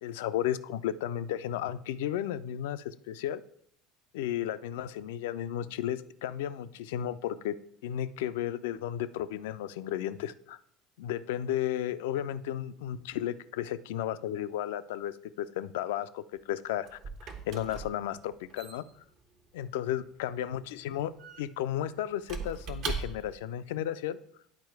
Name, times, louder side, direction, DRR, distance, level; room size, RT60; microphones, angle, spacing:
voice 1, 0.0-3.4 4.1-7.6 7.8-10.6 11.0-17.0 17.5-18.8 19.5-24.2, left 11 dB, 70° left, 14 dB, 0.3 m, -34 dB
Squeak / Wood, 16.3-23.5, right 4 dB, 55° right, 1.0 m, -41 dB
9.6 x 4.3 x 4.6 m, 0.68 s
figure-of-eight pair, 65°, 0 cm